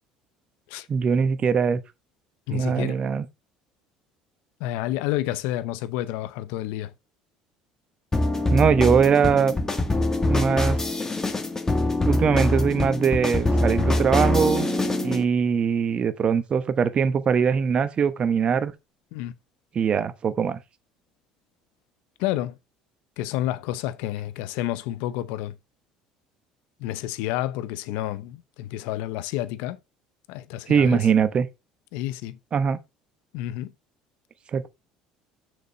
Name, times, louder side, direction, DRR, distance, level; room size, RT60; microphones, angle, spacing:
voice 1, 0.9-1.8 2.5-3.2 8.5-9.6 10.2-10.8 12.0-14.7 15.0-18.7 19.7-20.6 30.7-31.5 32.5-32.8 34.5-34.7, right 6 dB, 40° right, 1.0 m, -22 dB
voice 2, 2.5-3.0 4.6-6.9 19.1-19.3 22.2-22.5 23.2-25.5 26.8-29.8 30.3-31.1 31.9-32.4 33.3-33.7, left 14 dB, 75° left, 0.7 m, -30 dB
sound 1, 8.1-15.2, left 2 dB, 20° left, 1.7 m, -24 dB
6.5 x 5.2 x 4.4 m
hypercardioid pair, 70°, 3 cm